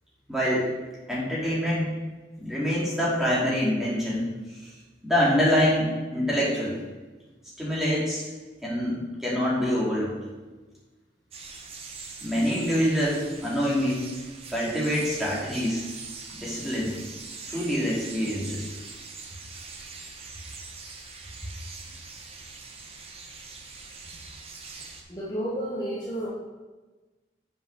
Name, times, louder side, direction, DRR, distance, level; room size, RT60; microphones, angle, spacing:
voice 1, 0.3-0.7 1.1-1.9 2.4-4.3 5.0-6.7 7.6-8.3 8.6-10.1 12.2-14.1 14.5-15.8 16.4-17.0 17.5-18.7, equal, ahead, -7 dB, 2.5 m, -25 dB
sound 1, 11.3-25.0, right 4 dB, 35° right, 0.9 m, -43 dB
voice 2, 25.1-26.3, right 1 dB, 25° left, -7 dB, 1.3 m, -31 dB
7.3 x 5.7 x 6.0 m, 1.2 s
head